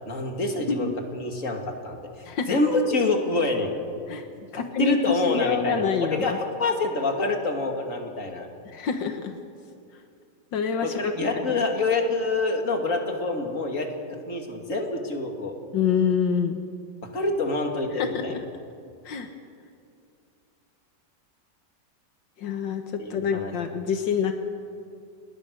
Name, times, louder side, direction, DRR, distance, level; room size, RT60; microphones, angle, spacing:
voice 1, 0.1-3.7 4.5-5.8 6.1-8.5 10.8-15.6 17.0-18.4 23.0-23.5, left 2 dB, 45° left, 3 dB, 2.9 m, -27 dB
voice 2, 4.5-6.4 8.7-9.4 10.5-11.1 11.5-11.6 15.7-16.6 17.9-18.2 19.1-19.3 22.4-24.3, left 6 dB, 85° left, 6 dB, 2.0 m, -26 dB
29.5 x 21.0 x 6.6 m, 2.4 s
omnidirectional pair, 1.9 m